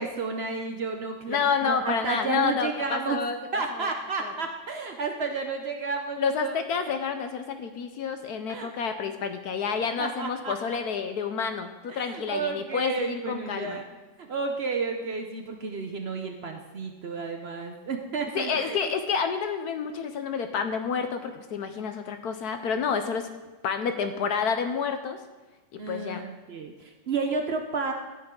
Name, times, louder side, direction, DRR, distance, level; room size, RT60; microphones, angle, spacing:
voice 1, 0.0-3.2 3.5-6.5 8.5-8.7 10.0-10.5 11.9-13.9 14.2-18.9 25.8-27.9, right 4 dB, 80° right, 4 dB, 0.5 m, -32 dB
voice 2, 1.3-3.4 4.2-4.3 6.2-13.8 18.3-23.3 23.6-25.2 25.7-26.2, left 6 dB, 65° left, 7 dB, 1.0 m, -29 dB
14.0 x 9.5 x 3.7 m, 1.2 s
omnidirectional pair, 2.1 m